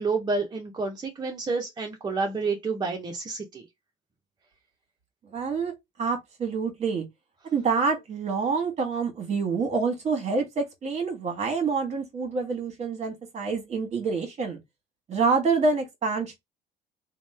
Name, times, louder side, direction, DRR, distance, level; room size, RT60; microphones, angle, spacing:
voice 1, 0.0-3.6, right 4 dB, 25° right, 0.6 m, -29 dB
voice 2, 5.3-5.7 6.0-7.0 7.5-14.6 15.1-16.4, right 4 dB, 40° right, 1.2 m, -27 dB
3.0 x 2.1 x 3.2 m
cardioid pair, 110°, 17 cm